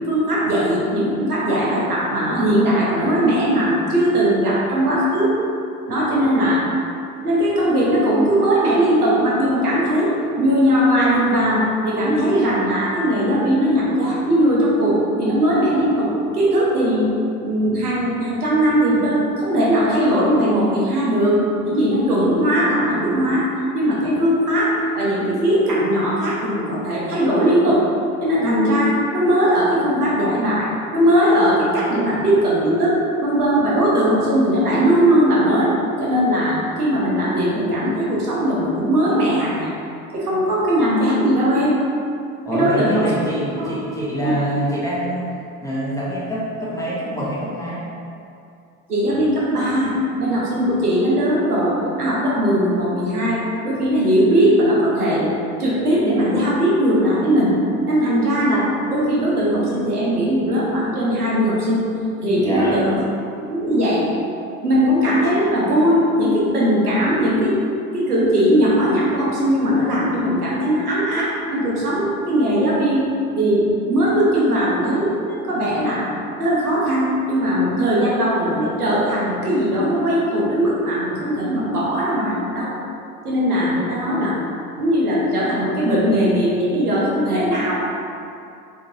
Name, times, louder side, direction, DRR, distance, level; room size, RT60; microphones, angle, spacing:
voice 1, 0.1-5.3 5.9-6.6 7.2-16.1 16.3-17.2 17.4-23.4 23.7-27.9 28.2-35.7 36.0-39.7 40.1-41.8 42.5-43.1 43.6-43.7 44.2-44.3 48.9-55.3 55.6-57.5 57.9-61.8 62.2-62.9 63.4-64.0 64.6-67.6 67.9-73.1 73.4-76.1 76.4-82.8 83.2-84.4 84.8-87.8, equal, 85° right, -6 dB, 0.7 m, -19 dB
voice 2, 42.5-45.3 45.6-47.8 62.3-62.9, equal, 5° left, -9 dB, 0.7 m, -25 dB
3.7 x 2.6 x 2.7 m, 2.6 s
figure-of-eight pair, 60°, 44 cm